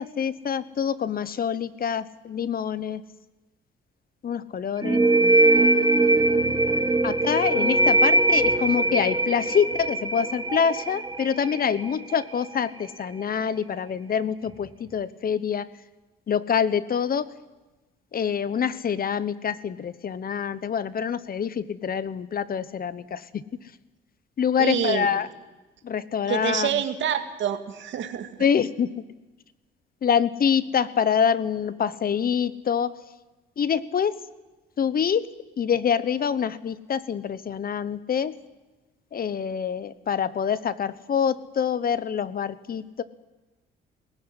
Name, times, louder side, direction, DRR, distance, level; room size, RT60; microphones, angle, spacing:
voice 1, 0.0-3.0 4.2-5.0 7.0-15.7 16.3-17.3 18.1-23.4 24.4-25.3 25.8-26.8 28.4-28.9 30.0-33.0 33.6-34.2 34.8-35.3 35.6-38.3 39.1-43.0, left 7 dB, 50° left, 16 dB, 1.1 m, -26 dB
sound 1, 4.8-12.2, right 2 dB, 20° right, 1.6 m, -21 dB
voice 2, 24.6-25.1 26.3-28.3, right 9 dB, 70° right, 7 dB, 2.2 m, -27 dB
19.0 x 16.5 x 9.8 m, 1.1 s
cardioid pair, 90°, 20 cm